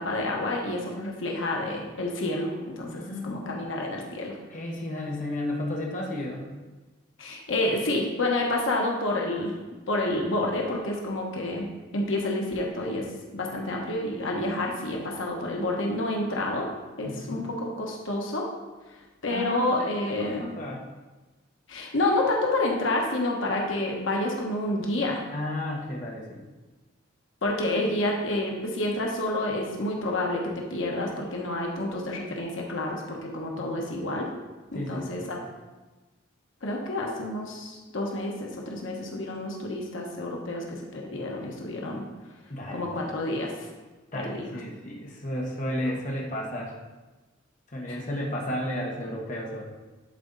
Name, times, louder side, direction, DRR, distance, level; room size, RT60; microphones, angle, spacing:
voice 1, 0.0-4.4 7.2-9.6 9.9-11.7 11.9-13.1 13.3-16.7 17.0-18.5 19.2-20.5 21.7-25.2 27.4-34.3 34.7-35.4 36.6-42.0 42.7-43.7 44.1-44.5 47.9-48.0, left 1 dB, 75° left, -1 dB, 1.2 m, -29 dB
voice 2, 2.9-3.7 4.5-6.5 17.0-17.5 19.3-20.8 25.3-26.4 33.7-33.8 34.7-35.4 42.5-42.9 44.1-46.7 47.7-49.6, left 1 dB, 40° left, -2 dB, 1.1 m, -33 dB
11.0 x 4.1 x 4.0 m, 1.2 s
head